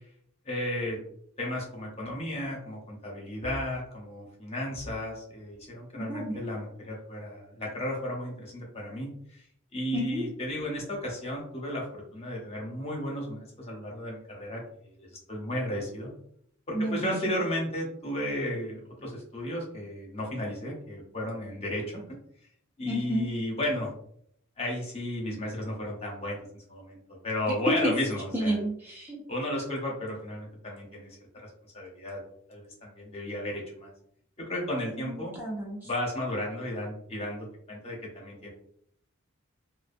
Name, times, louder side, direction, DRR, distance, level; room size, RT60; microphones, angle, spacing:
voice 1, 0.4-1.0 1.4-9.4 9.7-16.1 16.7-22.0 22.8-23.9 24.6-28.6 29.3-31.5 31.7-32.2 32.5-33.9 34.4-35.3 35.8-38.5, left 1 dB, 30° left, -2 dB, 0.7 m, -34 dB
voice 2, 5.9-6.4 9.9-10.3 16.7-17.4 22.9-23.3 27.8-27.9 28.3-29.2 35.0-35.9, equal, 10° right, -4 dB, 0.4 m, -31 dB
2.5 x 2.2 x 2.5 m, 0.67 s
head